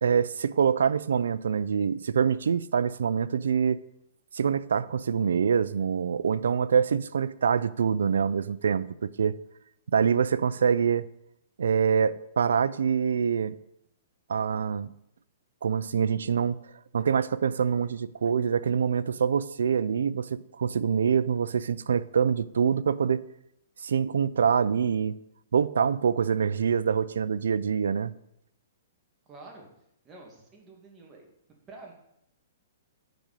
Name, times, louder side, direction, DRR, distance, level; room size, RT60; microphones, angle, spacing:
voice 1, 0.0-3.8 4.3-9.4 9.9-11.1 11.6-13.5 14.3-14.9 15.6-16.6 16.9-23.2 23.8-25.1 25.5-28.1, right 7 dB, 85° right, 0.5 m, -25 dB
voice 2, 29.3-29.7 30.0-31.3 31.7-31.9, right 2 dB, 20° right, 2.5 m, -48 dB
9.2 x 5.1 x 6.9 m
hypercardioid pair, 150°, 0 cm